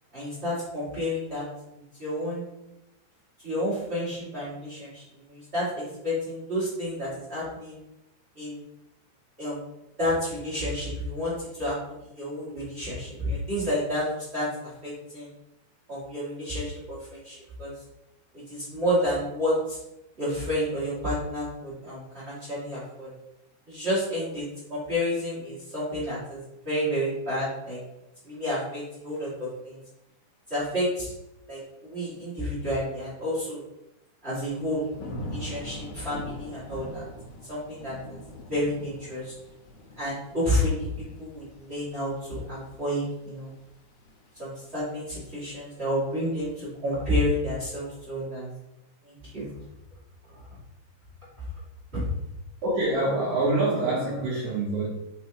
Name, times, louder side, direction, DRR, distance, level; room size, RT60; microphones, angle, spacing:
voice 1, 0.1-1.4 2.0-2.4 3.4-7.8 8.3-8.6 9.4-9.6 10.0-15.3 15.9-17.7 18.3-19.8 20.2-23.1 23.7-27.8 28.2-29.8 30.5-31.1 31.5-33.6 34.2-37.0 37.5-38.2 38.5-39.3 40.0-43.5 44.3-48.5 49.0-49.5 50.3-50.4 51.9-52.1, equal, 35° right, -9 dB, 0.9 m, -30 dB
Thunder / Rain, 34.5-45.4 45.8-46.3, left 1 dB, 80° left, 3.3 m, -43 dB
voice 2, 52.6-54.9, right 2 dB, 75° right, -6 dB, 1.7 m, -25 dB
5.9 x 5.4 x 3.0 m, 0.90 s
omnidirectional pair, 5.1 m